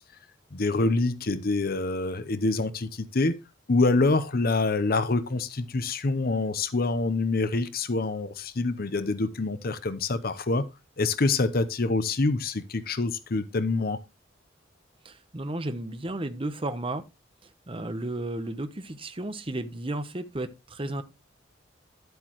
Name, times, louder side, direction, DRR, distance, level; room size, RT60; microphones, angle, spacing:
voice 1, 0.5-3.4 3.7-10.7 11.0-14.0, left 3 dB, 50° left, 0.7 m, -26 dB
voice 2, 15.0-17.0 17.7-21.0, right 1 dB, 30° right, 0.9 m, -33 dB
11.0 x 8.0 x 3.0 m
head